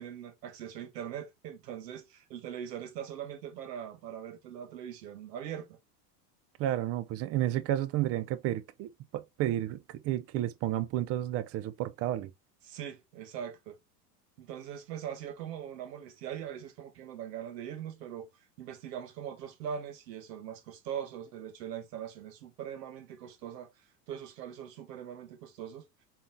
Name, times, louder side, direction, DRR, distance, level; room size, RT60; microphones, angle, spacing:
voice 1, 0.0-5.8 12.6-13.8 14.4-18.3 18.6-23.7 24.1-25.8, right 9 dB, 75° right, 1.3 m, -41 dB
voice 2, 6.6-9.8 10.0-12.3, right 13 dB, 30° right, 0.4 m, -31 dB
4.0 x 3.6 x 2.6 m
hypercardioid pair, 95°, 50 cm